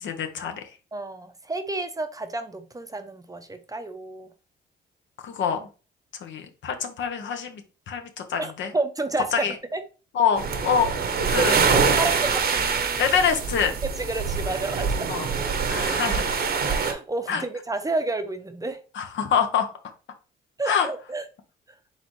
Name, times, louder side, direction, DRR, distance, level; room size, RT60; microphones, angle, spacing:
voice 1, 0.0-0.6 5.2-5.6 6.2-7.6 7.9-8.7 9.3-9.5 10.1-10.9 11.3-11.5 13.0-13.8 15.1-15.3 15.7-16.4 17.3-17.4 18.9-19.7 20.6-20.9, left 7 dB, 70° left, 7 dB, 0.9 m, -25 dB
voice 2, 0.9-4.3 8.4-9.8 11.4-13.1 14.0-15.1 16.6-18.8 20.6-21.2, right 2 dB, 15° right, 8 dB, 0.6 m, -30 dB
sound 1, 10.4-16.9, right 5 dB, 50° right, 0.9 m, -24 dB
4.1 x 4.0 x 3.1 m, 0.34 s
cardioid pair, 90°, 20 cm